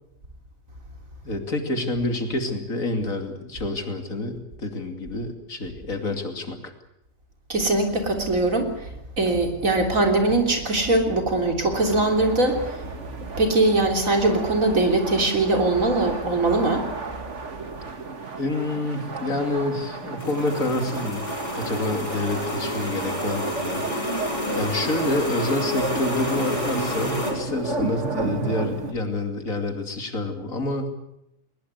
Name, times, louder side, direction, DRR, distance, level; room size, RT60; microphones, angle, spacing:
voice 1, 1.2-6.7 18.4-21.2 21.5-23.8 24.5-30.9, left 2 dB, 85° left, 6 dB, 3.2 m, -28 dB
voice 2, 7.5-12.8 13.4-16.8, right 2 dB, 80° right, 4 dB, 3.9 m, -21 dB
sound 1, 11.7-28.9, right 3 dB, 60° right, 2.3 m, -33 dB
sound 2, 20.2-27.3, left 1 dB, 25° left, 6.0 m, -30 dB
21.0 x 20.0 x 8.2 m, 0.84 s
omnidirectional pair, 1.4 m